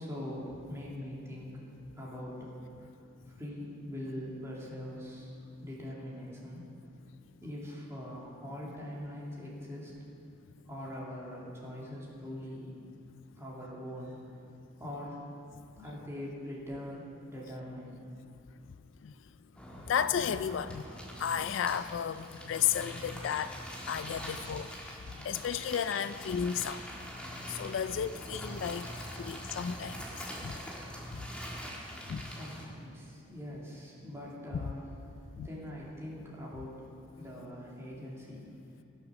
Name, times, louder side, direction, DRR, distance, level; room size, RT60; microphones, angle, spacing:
voice 1, 0.0-1.6 2.0-2.5 3.3-6.7 7.4-9.9 10.7-12.7 13.3-14.2 14.8-15.2 15.8-18.0 32.2-34.8 35.2-36.8 37.1-38.4, left 1 dB, 15° right, -5 dB, 2.5 m, -42 dB
sound 1, 19.5-32.6, equal, 5° left, 1.6 m, -43 dB
voice 2, 19.9-20.8 21.2-23.6 23.9-26.9 27.5-30.6 31.1-31.2 32.1-32.3 35.4-35.5, left 8 dB, 75° left, 13 dB, 0.3 m, -33 dB
16.0 x 6.7 x 6.2 m, 2.5 s
head